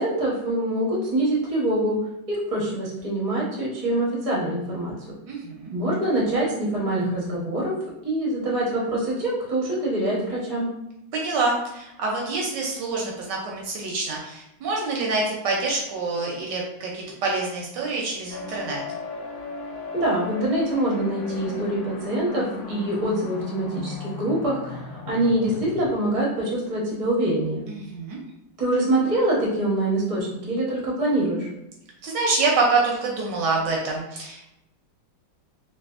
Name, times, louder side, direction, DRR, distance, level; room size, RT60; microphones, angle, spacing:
voice 1, 0.0-2.0 2.3-4.9 5.7-7.7 8.0-10.7 19.9-27.7 28.6-31.5, right 1 dB, 45° right, -5 dB, 0.4 m, -24 dB
voice 2, 5.3-5.7 11.1-18.8 27.7-28.2 32.0-34.4, right 3 dB, 75° right, -2 dB, 1.1 m, -26 dB
sound 1, 18.3-25.9, left 4 dB, 85° left, 1.4 m, -36 dB
3.3 x 2.4 x 2.4 m, 0.85 s
omnidirectional pair, 2.2 m